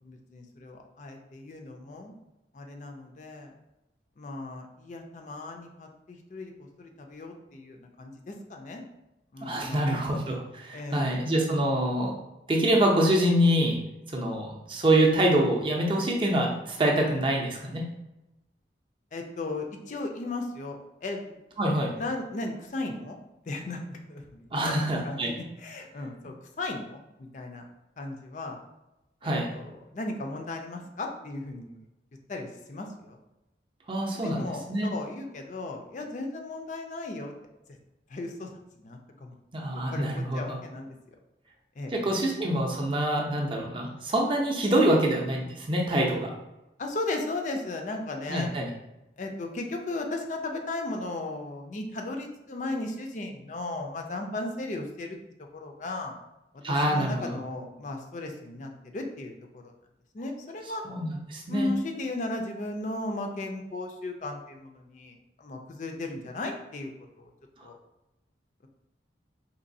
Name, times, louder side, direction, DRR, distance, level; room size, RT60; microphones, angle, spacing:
voice 1, 0.0-2.1 2.5-3.5 4.2-8.8 9.3-10.1 10.7-11.2 19.1-21.4 22.0-23.2 23.5-27.7 28.0-28.6 29.2-31.8 32.3-33.2 34.1-37.3 38.1-38.5 38.8-39.3 39.6-40.9 41.8-42.2 46.8-48.5 49.2-55.2 55.5-56.2 56.7-59.7 60.1-60.8 61.5-66.9 67.2-67.3 67.6-67.8, left 2 dB, 45° left, 3 dB, 0.4 m, -36 dB
voice 2, 9.4-12.1 12.5-13.8 14.1-17.9 21.6-21.9 24.5-25.3 29.2-29.5 33.9-34.9 39.5-40.5 41.9-46.3 48.3-48.7 56.6-57.3 60.8-61.7, right 1 dB, 30° right, -1 dB, 0.5 m, -25 dB
4.0 x 3.0 x 2.6 m, 0.95 s
head